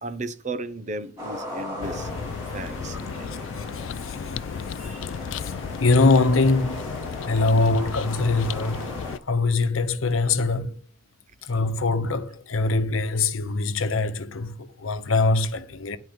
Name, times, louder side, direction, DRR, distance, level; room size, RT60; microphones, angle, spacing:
voice 1, 0.0-3.5 4.8-5.1, right 2 dB, 35° right, 0.8 m, -36 dB
sound 1, 1.2-9.2, equal, 15° right, 4.7 m, -38 dB
sound 2, 1.8-9.2, left 6 dB, 65° left, 0.4 m, -34 dB
voice 2, 4.0-4.3 5.3-5.5 5.8-7.0 7.2-8.9 9.3-10.8 11.4-16.0, left 3 dB, 90° left, 0.9 m, -23 dB
10.5 x 4.6 x 7.9 m
head